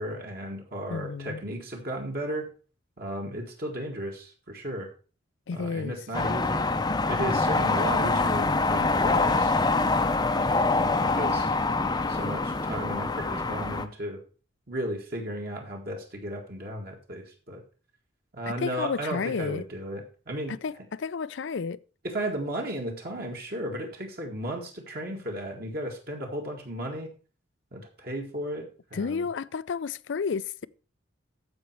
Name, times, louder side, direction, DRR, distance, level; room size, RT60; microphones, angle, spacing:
voice 1, 0.0-2.5 3.0-4.9 5.5-6.7 7.0-10.2 10.8-11.5 12.1-14.2 14.7-17.6 18.3-20.5 22.0-27.1 27.7-29.2, right 1 dB, 50° right, 1.8 m, -35 dB
voice 2, 0.9-1.4 5.5-6.0 18.5-19.6 20.5-21.8 28.9-30.7, left 5 dB, 65° left, 0.4 m, -31 dB
sound 1, 6.1-13.9, left 3 dB, 20° left, 0.6 m, -25 dB
14.0 x 5.3 x 4.6 m
head